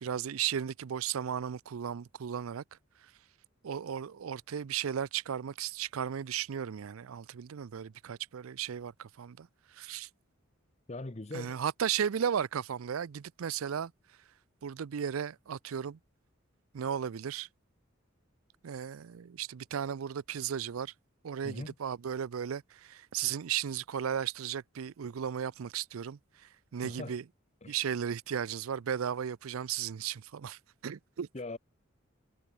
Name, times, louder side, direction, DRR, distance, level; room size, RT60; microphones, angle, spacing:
voice 1, 0.0-2.6 3.6-9.5 9.7-10.1 11.3-13.9 14.6-16.0 16.7-17.5 18.6-20.9 21.2-27.2 27.7-31.3, right 8 dB, 85° right, 0.4 m, -35 dB
voice 2, 10.9-11.6 21.4-21.7 26.8-27.2 27.6-27.8 31.3-31.6, left 2 dB, 30° left, 0.9 m, -41 dB
head